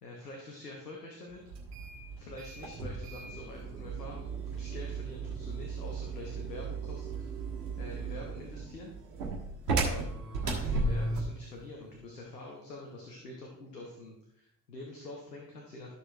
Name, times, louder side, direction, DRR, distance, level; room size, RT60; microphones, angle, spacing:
voice 1, 0.0-1.4 2.2-7.4 7.8-8.9 9.7-15.9, left 2 dB, 85° left, -1 dB, 1.3 m, -46 dB
sound 1, 1.5-11.4, right 3 dB, 75° right, 1.5 m, -35 dB
12.5 x 6.7 x 3.2 m, 0.81 s
figure-of-eight pair, 50°, 47 cm